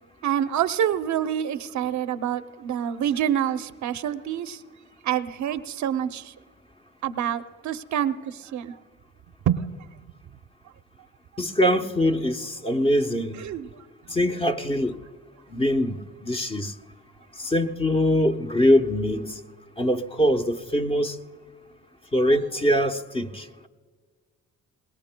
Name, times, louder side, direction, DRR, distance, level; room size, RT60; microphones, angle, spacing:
voice 1, 0.2-4.6 5.0-6.3 7.0-8.8 9.5-9.7 13.3-13.7 14.1-14.2, right 10 dB, 70° right, 0.7 m, -27 dB
voice 2, 11.4-13.4 14.1-15.0 15.5-16.7 17.4-19.3 19.8-21.1 22.1-23.7, equal, 20° left, 0.9 m, -23 dB
23.5 x 20.5 x 2.2 m
cardioid pair, 90°, 30 cm